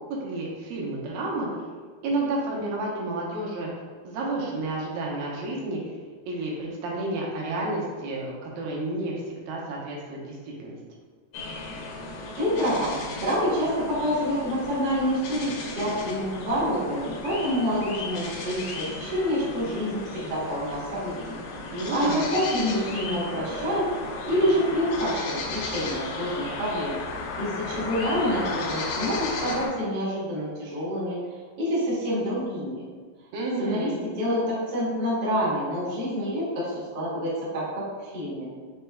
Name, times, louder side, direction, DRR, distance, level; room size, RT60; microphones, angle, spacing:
voice 1, 0.2-1.5 2.0-3.7 4.0-5.8 6.3-10.8 21.7-22.2 33.3-34.0, right 2 dB, 85° right, -3 dB, 2.6 m, -30 dB
sound 1, 11.3-29.7, left 3 dB, 80° left, 2.3 m, -35 dB
voice 2, 12.3-21.1 21.9-23.9 24.2-27.0 27.3-31.2 31.6-32.8 33.6-38.5, equal, 55° right, -8 dB, 1.1 m, -27 dB
6.4 x 3.2 x 2.2 m, 1.5 s
omnidirectional pair, 4.1 m